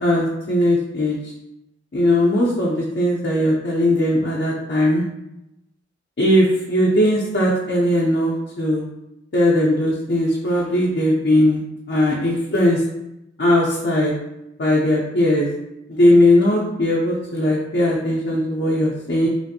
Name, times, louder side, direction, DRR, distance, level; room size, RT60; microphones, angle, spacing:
voice 1, 0.0-1.2 1.9-5.0 6.2-8.8 9.3-11.6 11.9-12.8 13.4-14.1 14.6-15.5 16.0-19.3, left 1 dB, 60° left, -4 dB, 0.5 m, -18 dB
3.1 x 2.5 x 2.6 m, 0.87 s
head